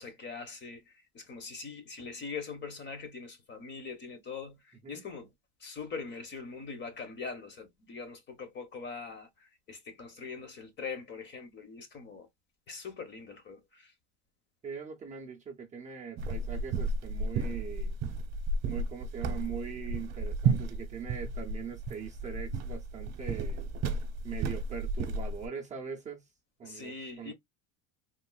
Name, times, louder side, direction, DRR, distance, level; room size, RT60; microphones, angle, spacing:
voice 1, 0.0-5.3 5.6-12.3 12.7-13.9 26.6-27.3, left 5 dB, 30° left, 0.8 m, -42 dB
voice 2, 14.6-18.0 18.7-23.7 24.2-26.3 26.6-27.3, right 7 dB, 20° right, 0.5 m, -41 dB
sound 1, 16.2-25.5, right 3 dB, 45° right, 0.8 m, -33 dB
3.7 x 2.4 x 2.2 m
cardioid pair, 145°, 36 cm